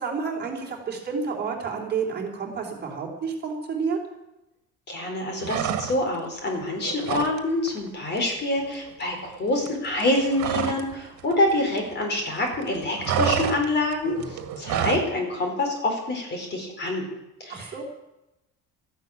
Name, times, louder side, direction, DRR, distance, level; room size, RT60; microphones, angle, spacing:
voice 1, 0.0-4.0 17.5-17.8, right 5 dB, 35° right, 0 dB, 3.4 m, -30 dB
voice 2, 4.9-14.1 14.6-17.1 17.4-17.7, left 1 dB, 35° left, 3 dB, 4.4 m, -26 dB
sound 1, 5.4-6.2 6.5-7.4 7.7-7.9 8.2-10.9 11.2-12.3 12.5-15.1, right 9 dB, 65° right, 1.9 m, -29 dB
14.0 x 11.5 x 8.9 m, 0.93 s
cardioid pair, 155°, 31 cm